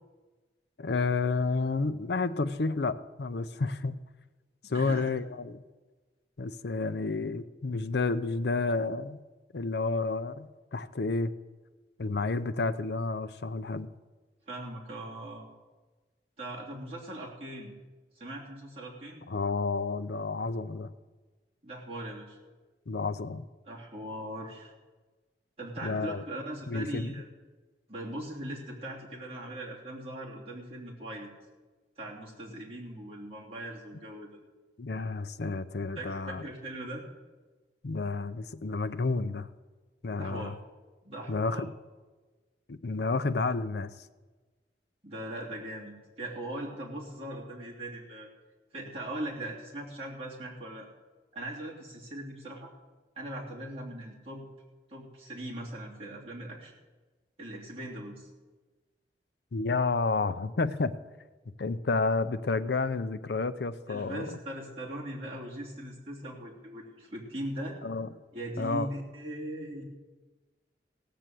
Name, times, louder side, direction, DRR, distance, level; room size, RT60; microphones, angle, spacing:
voice 1, 0.8-3.9 4.7-5.6 6.4-9.2 9.5-11.3 12.0-13.9 19.3-20.9 22.9-23.4 25.8-26.2 26.7-27.1 34.8-36.4 37.8-39.5 40.0-40.5 41.3-41.7 42.7-43.9 59.5-60.9 61.6-64.4 67.8-68.1 68.6-68.9, left 3 dB, 65° left, 11 dB, 0.6 m, -30 dB
voice 2, 4.6-5.1 14.5-15.5 16.4-17.7 18.1-19.2 21.6-22.4 23.7-24.7 25.6-27.3 27.9-31.3 32.0-34.4 35.9-37.0 40.2-40.5 41.0-41.6 45.0-48.3 48.7-50.9 51.3-52.7 53.2-54.5 54.9-56.7 57.4-58.3 63.9-67.8 68.3-69.8, right 1 dB, 35° right, -5 dB, 3.0 m, -40 dB
16.5 x 6.8 x 7.6 m, 1.3 s
head